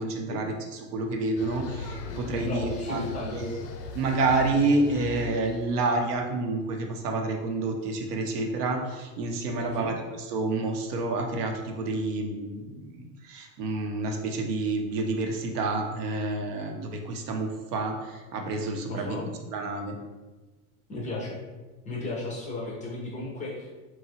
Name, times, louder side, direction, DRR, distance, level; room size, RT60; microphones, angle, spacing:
voice 1, 0.0-3.6 3.9-19.2 19.5-20.0, right 2 dB, 85° right, 3 dB, 0.7 m, -29 dB
sound 1, 1.4-6.3, left 3 dB, 85° left, 0.5 m, -39 dB
voice 2, 2.4-3.4 9.6-9.9 18.9-19.3 20.9-21.4 21.9-23.7, left 2 dB, 20° left, -3 dB, 0.4 m, -35 dB
2.8 x 2.3 x 2.7 m, 1.2 s
hypercardioid pair, 110°, 46 cm